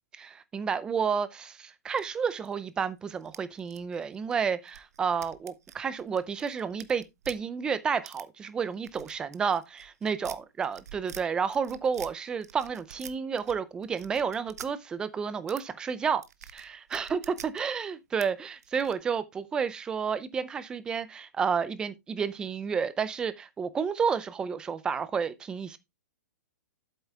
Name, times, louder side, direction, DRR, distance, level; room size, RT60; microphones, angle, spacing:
voice 1, 0.1-16.2 16.5-25.8, right 6 dB, 10° right, 0.5 m, -31 dB
sound 1, 1.9-2.7 3.1-7.4 8.1-8.2 8.7-11.2 11.5-12.1 12.4-13.5 13.8-14.7 15.5-15.6 15.9-17.6 18.2-18.3 18.5-18.9, right 9 dB, 70° right, 0.9 m, -48 dB
8.2 x 7.7 x 3.4 m
hypercardioid pair, 165°, 9 cm